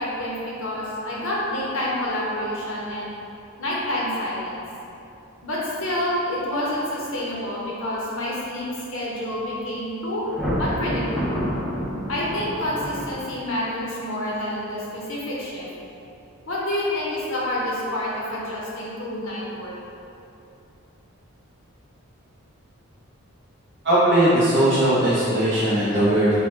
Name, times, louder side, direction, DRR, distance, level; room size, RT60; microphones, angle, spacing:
voice 1, 0.0-3.1 3.6-4.6 5.4-10.2 10.6-11.5 12.1-15.7 16.5-19.8, left 1 dB, 65° left, -6 dB, 0.6 m, -28 dB
Thunder, 10.2-13.6, equal, ahead, 0.4 m, -28 dB
voice 2, 23.8-26.4, right 1 dB, 50° right, -12 dB, 0.7 m, -19 dB
3.5 x 2.1 x 4.3 m, 2.8 s
head